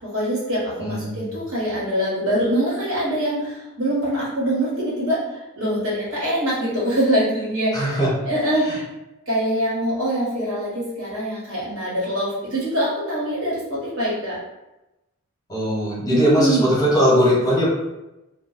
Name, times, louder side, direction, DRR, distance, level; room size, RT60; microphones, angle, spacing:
voice 1, 0.0-8.8 9.3-14.4 16.1-16.6, equal, 75° right, -7 dB, 1.4 m, -24 dB
voice 2, 0.8-1.3 7.7-8.1 15.5-17.7, equal, 15° left, -6 dB, 1.1 m, -19 dB
2.4 x 2.2 x 3.9 m, 0.97 s
head